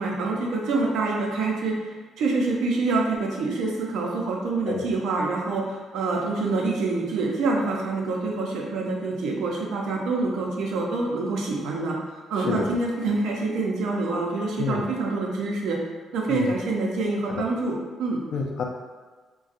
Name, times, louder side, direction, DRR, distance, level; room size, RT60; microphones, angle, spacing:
voice 1, 0.0-1.8 2.2-12.0 12.3-15.8 16.1-18.2, right 3 dB, 85° right, -1 dB, 0.6 m, -26 dB
voice 2, 18.3-18.6, left 5 dB, 75° left, 1 dB, 0.5 m, -28 dB
2.5 x 2.2 x 4.0 m, 1.4 s
cardioid pair, 90°, 0 cm